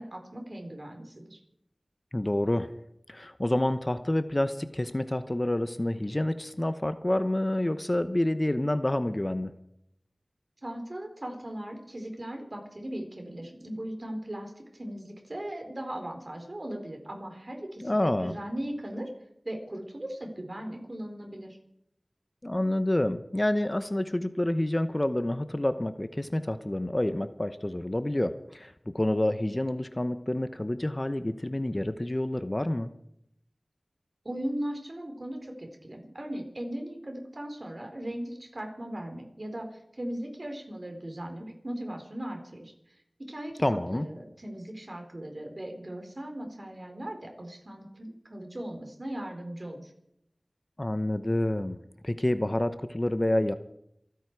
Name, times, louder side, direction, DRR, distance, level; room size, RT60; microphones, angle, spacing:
voice 1, 0.0-1.4 10.6-19.1 19.4-21.6 34.2-42.7 43.2-49.9, right 1 dB, 50° right, 3 dB, 4.3 m, -38 dB
voice 2, 2.1-2.7 3.1-9.5 17.8-18.3 22.4-32.9 43.6-44.1 50.8-53.5, left 1 dB, 30° left, 11 dB, 0.9 m, -28 dB
27.5 x 9.5 x 4.8 m, 0.77 s
wide cardioid pair, 40°, 0 cm